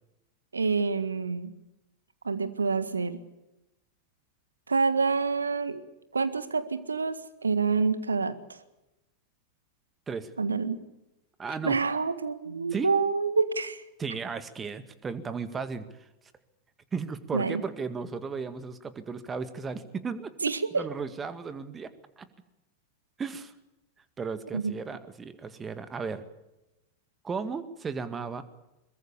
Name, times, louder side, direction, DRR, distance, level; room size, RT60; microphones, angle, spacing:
voice 1, 0.5-1.5 2.2-3.2 4.7-5.8 6.1-8.6 10.4-10.8 11.6-13.8 17.3-17.6 20.4-20.8 24.5-24.7, right 4 dB, 75° right, 13 dB, 1.7 m, -27 dB
voice 2, 11.4-11.8 12.7-12.9 14.0-16.1 16.9-20.3 20.7-21.9 22.2-22.3 23.2-23.5 24.2-26.2 27.2-28.4, right 5 dB, 20° right, 12 dB, 2.0 m, -35 dB
23.0 x 21.5 x 7.0 m, 0.94 s
figure-of-eight pair, 90°, 0 cm